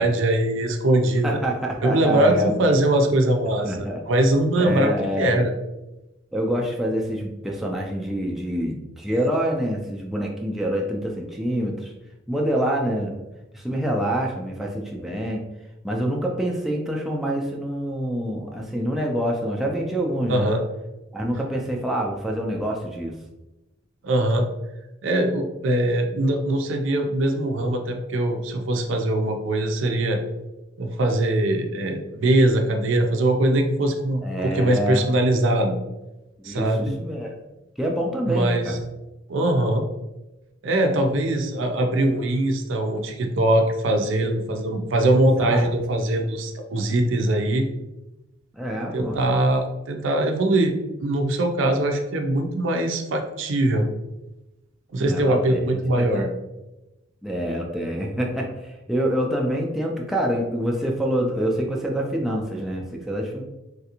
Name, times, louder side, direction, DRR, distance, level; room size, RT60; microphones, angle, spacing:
voice 1, 0.0-1.4 1.8-3.7 4.1-4.9 5.2-5.5 20.3-20.6 24.0-24.5 25.0-30.2 30.8-35.8 36.4-36.9 38.3-38.8 39.3-39.8 40.6-47.7 48.9-50.7 51.0-53.9 54.9-56.3, right 1 dB, 70° right, 4 dB, 0.5 m, -22 dB
voice 2, 1.2-2.6 3.6-4.0 4.6-5.4 6.3-11.9 12.3-13.2 13.5-15.4 15.8-20.5 21.1-23.1 34.2-35.0 36.4-37.3 37.8-38.8 45.1-45.7 48.5-49.2 54.9-56.2 57.2-63.4, equal, ahead, -1 dB, 0.3 m, -26 dB
3.3 x 2.4 x 2.8 m, 0.98 s
head